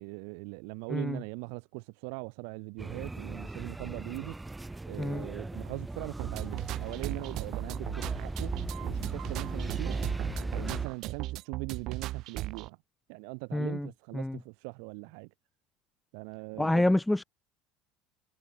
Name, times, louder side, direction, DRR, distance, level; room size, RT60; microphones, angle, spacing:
voice 1, 0.0-4.4 4.9-8.5 8.8-9.9 10.5-12.8 13.1-15.3 16.1-16.9, right 40 dB or more, 75° right, 1.6 m, -41 dB
voice 2, 0.9-1.2 5.0-5.3 13.5-13.9 14.1-14.4 16.6-17.2, left 1 dB, 5° left, 0.5 m, -27 dB
sound 1, 2.8-10.9, right 2 dB, 10° right, 0.9 m, -37 dB
sound 2, 6.2-12.7, right 16 dB, 60° right, 0.4 m, -37 dB
supercardioid pair, 105°, 0 cm